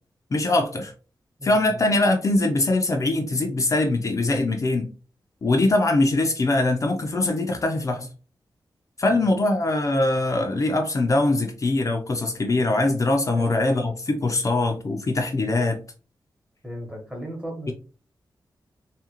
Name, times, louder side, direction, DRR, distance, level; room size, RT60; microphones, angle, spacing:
voice 1, 0.3-0.9 1.4-4.9 5.4-8.1 9.0-15.8, left 2 dB, 40° left, 0.4 m, -22 dB
voice 2, 1.4-1.8 9.1-9.2 13.3-13.5 16.6-17.7, equal, 10° right, 1.0 m, -36 dB
2.7 x 2.4 x 2.8 m
wide cardioid pair, 100°, 8 cm